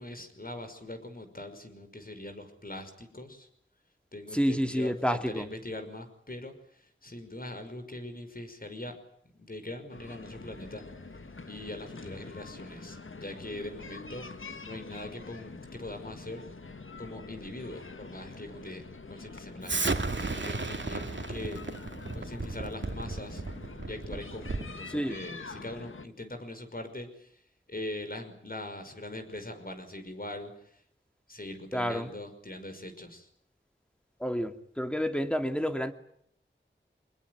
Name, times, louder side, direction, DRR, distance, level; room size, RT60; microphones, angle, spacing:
voice 1, 0.0-3.5 4.1-9.0 9.2-10.8 11.5-14.3 14.6-16.5 17.0-21.6 22.1-23.4 23.9-27.3 27.7-30.5 31.3-33.3, left 1 dB, 45° left, 7 dB, 5.7 m, -42 dB
voice 2, 4.3-5.5 24.9-25.2 31.7-32.1 34.2-35.9, equal, 5° left, 6 dB, 2.6 m, -29 dB
sound 1, 9.9-26.1, left 3 dB, 85° left, 1.7 m, -45 dB
Explosion, 19.7-24.8, right 3 dB, 65° right, 2.4 m, -34 dB
25.0 x 21.0 x 9.8 m, 0.67 s
wide cardioid pair, 65°, 20 cm